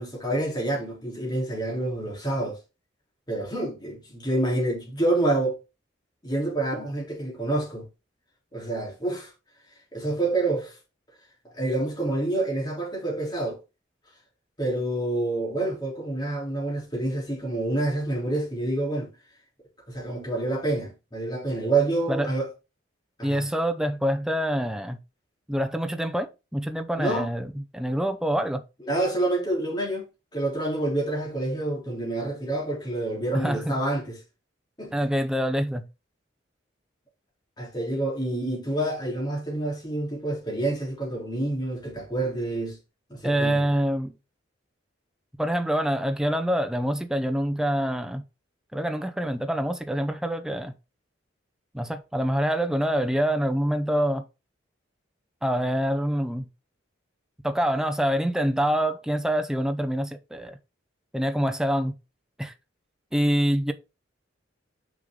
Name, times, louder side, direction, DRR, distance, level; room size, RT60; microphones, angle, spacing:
voice 1, 0.0-2.6 3.3-5.6 6.2-7.9 8.5-9.3 9.9-10.8 11.5-13.6 14.6-19.1 19.9-22.5 23.2-23.4 27.0-27.3 28.8-34.2 34.8-35.1 37.6-42.8 43.1-43.7, right 2 dB, 20° left, 3.2 m, -28 dB
voice 2, 23.2-25.0 25.5-28.6 33.3-33.8 34.9-35.9 43.2-44.2 45.4-48.2 48.7-50.7 51.7-54.3 55.4-56.5 57.4-60.6 61.1-61.9 62.4-62.5 63.1-63.7, equal, 5° right, 0.6 m, -26 dB
6.3 x 5.6 x 3.7 m
head